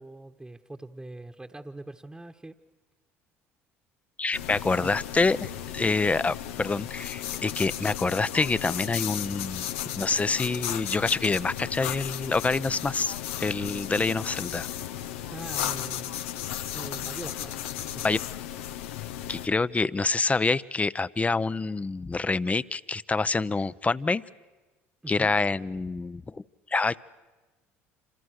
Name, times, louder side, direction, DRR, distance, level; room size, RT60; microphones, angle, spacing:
voice 1, 0.0-2.5 4.7-5.0 15.3-16.2 16.7-18.0 25.0-25.3, right 2 dB, 10° right, 3 dB, 1.3 m, -42 dB
voice 2, 4.2-9.7 10.0-14.7 18.0-18.2 19.3-24.2 25.1-26.4 26.7-27.0, left 3 dB, 20° left, 17 dB, 0.7 m, -26 dB
sound 1, 4.3-19.5, left 11 dB, 80° left, 0.8 m, -35 dB
27.0 x 27.0 x 6.5 m, 1.2 s
hypercardioid pair, 70°, 7 cm